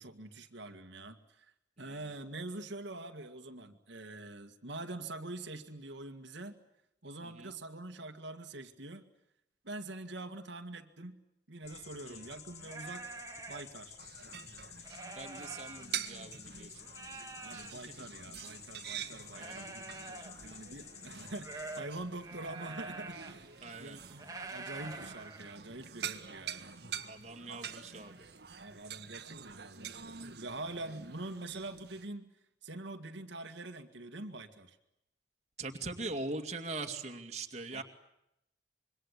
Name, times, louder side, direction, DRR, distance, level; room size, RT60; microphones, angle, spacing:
voice 1, 0.0-6.6 7.0-9.0 9.6-11.2 11.5-13.1 13.5-14.0 17.4-19.7 20.4-23.5 23.8-24.2 24.5-26.6 27.5-27.6 28.6-32.3 32.6-34.8 37.7-37.8, right 2 dB, 85° right, 5 dB, 2.0 m, -45 dB
voice 2, 1.8-2.1 7.2-7.5 12.0-12.2 15.1-17.2 17.5-18.1 19.4-19.7 23.6-24.0 27.0-28.3 35.6-37.8, right 3 dB, 40° right, 4 dB, 2.4 m, -42 dB
sound 1, 11.6-16.4 16.7-26.0, right 3 dB, 20° right, 2.3 m, -48 dB
sound 2, 11.7-21.8, left 9 dB, 40° left, 1.3 m, -52 dB
sound 3, 14.0-32.1, right 8 dB, 60° right, 1.7 m, -46 dB
26.5 x 23.5 x 8.2 m, 0.83 s
head